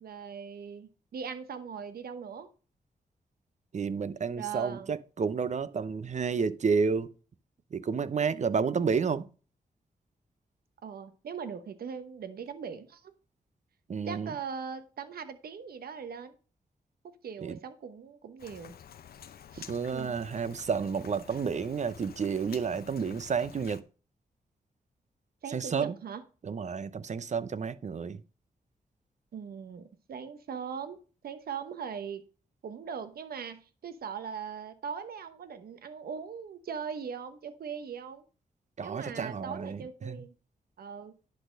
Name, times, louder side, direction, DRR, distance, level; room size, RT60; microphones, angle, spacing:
voice 1, 0.0-2.5 4.3-4.9 10.8-13.1 14.0-16.4 17.0-18.7 19.5-20.1 25.4-26.2 29.3-32.2 32.6-38.2 38.8-40.3 40.8-41.2, right 6 dB, 80° right, 1.0 m, -40 dB
voice 2, 3.7-7.1 7.7-9.2 13.9-14.3 17.4-17.6 19.7-23.8 25.5-25.9 26.4-28.2 38.8-39.8 40.1-40.2, right 5 dB, 50° right, 0.7 m, -30 dB
Rain, 18.4-23.8, left 8 dB, 80° left, 0.7 m, -49 dB
10.5 x 4.1 x 6.4 m
cardioid pair, 80°, 16 cm